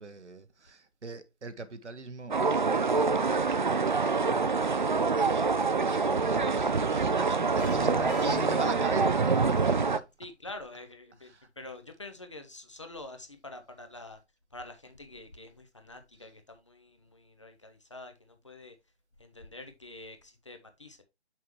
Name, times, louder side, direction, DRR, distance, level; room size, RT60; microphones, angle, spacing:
voice 1, 0.0-9.6 11.3-11.5, right 3 dB, 90° right, 1.1 m, -42 dB
sound 1, 2.3-10.0, right 4 dB, 45° right, 0.4 m, -26 dB
sound 2, 7.6-9.6, left 2 dB, 10° left, 1.3 m, -39 dB
voice 2, 10.2-14.2 14.5-18.7 19.2-21.0, left 2 dB, 25° left, 0.6 m, -46 dB
6.0 x 5.9 x 3.0 m
figure-of-eight pair, 160°, 34 cm